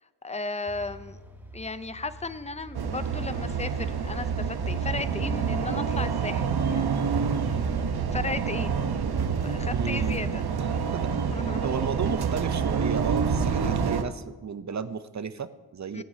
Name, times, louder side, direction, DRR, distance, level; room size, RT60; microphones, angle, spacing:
voice 1, 0.2-1.2 1.5-7.0 7.5-7.6 8.1-8.7 9.4-10.4 11.3-11.7 15.9-16.0, left 3 dB, 15° left, 13 dB, 0.6 m, -35 dB
sound 1, 0.7-14.3, right 2 dB, 5° right, 2.9 m, -49 dB
sound 2, 2.7-14.0, right 6 dB, 60° right, 1.0 m, -27 dB
voice 2, 9.7-10.2 10.6-11.1 11.6-16.0, right 6 dB, 40° right, 13 dB, 0.7 m, -33 dB
18.0 x 9.3 x 2.8 m, 1.2 s
cardioid pair, 60°, 43 cm